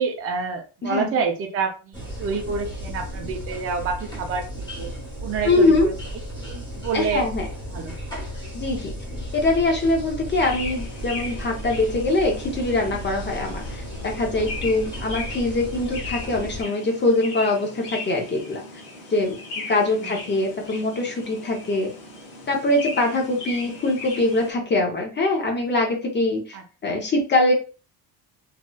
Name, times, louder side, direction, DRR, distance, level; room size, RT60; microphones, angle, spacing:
voice 1, 0.0-4.9 5.2-5.9 6.5-7.3 7.7-8.0 9.1-9.2 20.0-20.1 26.5-26.6, right 5 dB, 35° right, 3 dB, 0.5 m, -28 dB
voice 2, 0.8-1.1 5.4-5.9 6.9-7.5 8.5-8.9 9.3-18.6 19.1-19.4 19.7-21.9 22.5-26.6 26.8-27.5, left 2 dB, 25° left, 1 dB, 0.6 m, -23 dB
sound 1, 1.9-16.6, equal, 10° left, 1.2 m, -34 dB
sound 2, 10.2-24.5, left 3 dB, 85° left, 1.5 m, -38 dB
3.1 x 2.8 x 2.2 m, 0.34 s
cardioid pair, 155°, 41 cm